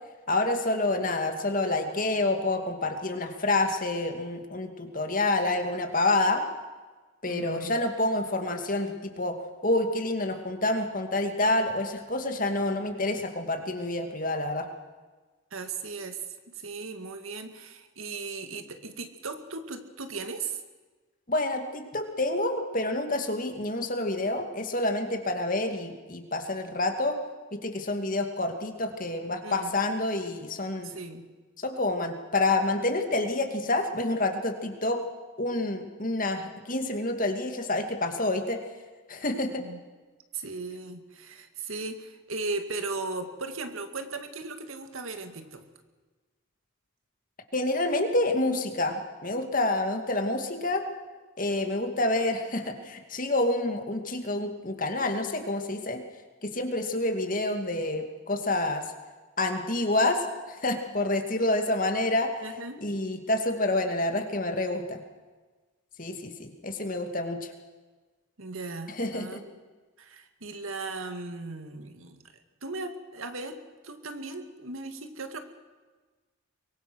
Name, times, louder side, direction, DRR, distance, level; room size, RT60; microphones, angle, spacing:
voice 1, 0.3-6.4 7.2-9.4 9.6-14.7 21.3-27.2 27.5-30.9 31.6-35.0 35.4-38.6 39.1-39.6 47.5-50.8 51.4-56.0 56.4-58.8 59.4-62.4 62.8-65.0 66.0-67.5 69.0-69.4, left 2 dB, 40° left, 6 dB, 2.4 m, -28 dB
voice 2, 7.3-7.7 15.5-20.6 29.4-29.7 30.8-31.3 39.6-39.8 40.3-45.6 62.4-62.8 68.4-69.6 70.0-72.2 72.6-73.6 73.8-75.4, right 3 dB, 75° right, 7 dB, 2.2 m, -37 dB
23.5 x 23.5 x 6.3 m, 1.3 s
head